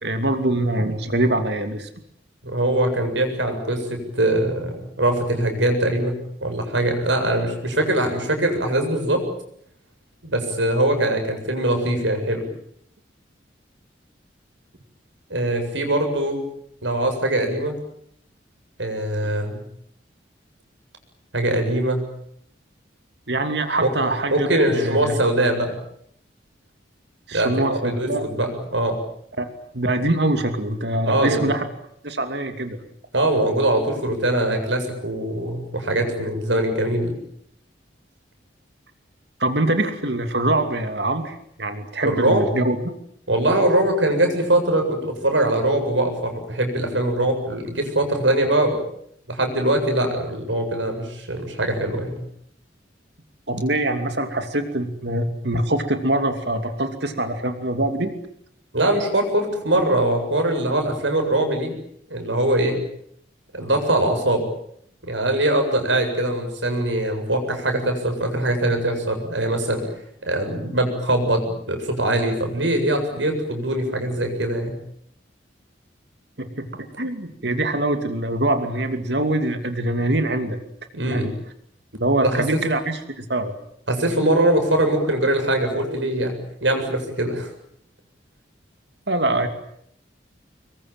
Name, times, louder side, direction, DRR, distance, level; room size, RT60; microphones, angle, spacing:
voice 1, 0.0-1.9 19.5-19.7 23.3-25.2 27.3-28.2 29.4-29.5 29.7-31.6 32.0-32.8 39.4-42.8 53.5-58.1 76.4-76.7 77.0-80.6 81.1-81.3 82.0-83.5 89.1-89.5, right 1 dB, 65° right, 7 dB, 2.7 m, -24 dB
voice 2, 2.4-9.2 10.2-12.4 15.3-16.4 16.8-17.8 18.8-19.6 21.3-22.1 23.8-23.9 24.3-25.8 27.3-29.0 31.1-31.4 33.1-37.2 42.0-42.5 43.3-48.8 49.3-52.2 58.7-61.7 62.1-62.8 63.5-64.4 65.0-69.8 70.3-74.8 80.9-81.3 82.2-82.4 83.9-87.5, right 1 dB, 85° right, 5 dB, 7.8 m, -22 dB
26.0 x 23.0 x 9.1 m, 0.70 s
head